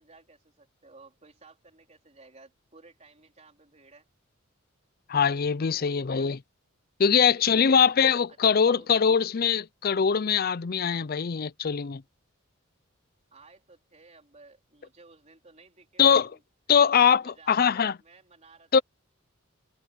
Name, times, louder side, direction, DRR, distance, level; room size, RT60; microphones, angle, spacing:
voice 1, 0.0-4.1 5.7-6.3 7.1-9.3 13.3-16.4 16.7-18.8, right 3 dB, 35° right, 4.2 m, -55 dB
voice 2, 5.1-6.4 7.0-12.0 16.0-16.3 16.7-18.0 18.7-18.8, left 6 dB, 45° left, 0.5 m, -22 dB
head